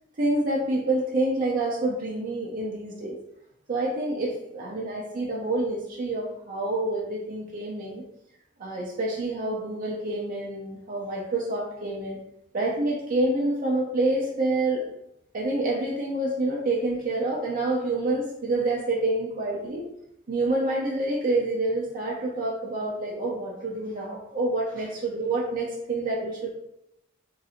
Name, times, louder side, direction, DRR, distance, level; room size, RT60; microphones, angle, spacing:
voice 1, 0.2-3.2 3.7-8.0 8.6-12.2 12.5-14.9 15.3-19.9 20.3-26.6, right 2 dB, 45° right, -3 dB, 0.7 m, -27 dB
3.8 x 2.6 x 4.2 m, 0.80 s
head